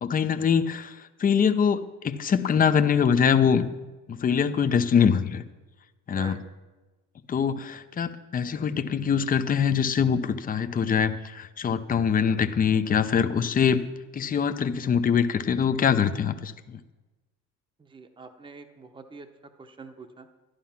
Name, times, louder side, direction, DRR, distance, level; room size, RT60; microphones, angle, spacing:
voice 1, 0.0-3.7 4.1-5.4 6.1-6.4 7.3-13.8 14.1-16.8, left 7 dB, 30° left, 10 dB, 0.7 m, -23 dB
voice 2, 17.8-19.3 19.6-20.3, right 4 dB, 15° right, 6 dB, 0.9 m, -44 dB
11.5 x 11.5 x 5.8 m, 1.2 s
cardioid pair, 115°, 30 cm